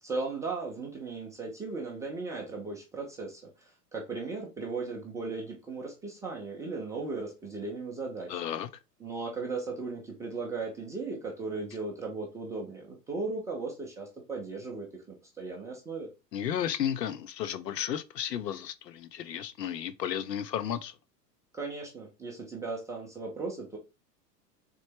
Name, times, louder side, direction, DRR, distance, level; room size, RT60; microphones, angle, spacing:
voice 1, 0.0-8.4 9.0-15.0 15.4-16.1 21.5-23.8, right 3 dB, 10° right, 0.3 m, -37 dB
voice 2, 8.3-8.7 16.3-20.9, left 9 dB, 85° left, 0.7 m, -33 dB
3.7 x 3.3 x 3.4 m
hypercardioid pair, 95°, 49 cm